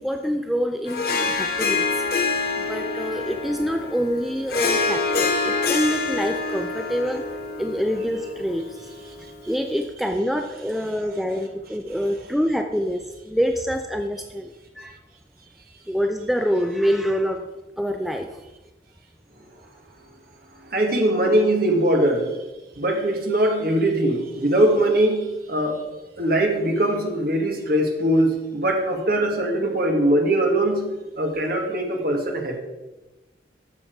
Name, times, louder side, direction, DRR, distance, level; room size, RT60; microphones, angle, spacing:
voice 1, 0.0-1.9 2.7-7.2 7.6-8.8 9.5-14.9 15.9-17.5 17.8-18.3, equal, ahead, 5 dB, 0.4 m, -26 dB
Harp, 0.9-9.5, left 4 dB, 55° left, 1.2 m, -26 dB
voice 2, 20.7-22.3 22.8-25.8 26.2-32.6, right 1 dB, 50° right, 2 dB, 2.0 m, -21 dB
12.0 x 7.4 x 4.6 m, 1.1 s
head